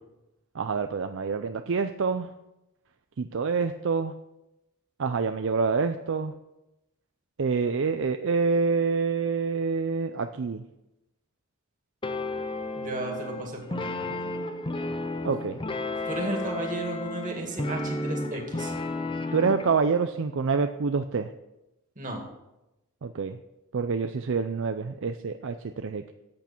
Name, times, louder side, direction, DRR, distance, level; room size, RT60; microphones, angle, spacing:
voice 1, 0.6-2.3 3.2-4.1 5.0-6.3 7.4-10.6 15.2-15.6 19.3-21.3 23.0-23.4 23.7-26.0, right 5 dB, 60° right, 8 dB, 0.5 m, -27 dB
sound 1, 12.0-19.7, left 2 dB, 25° left, 0.7 m, -32 dB
voice 2, 12.8-14.3 16.0-18.7 22.0-22.2, right 2 dB, 40° right, 1 dB, 2.3 m, -34 dB
14.0 x 8.4 x 4.5 m, 0.94 s
head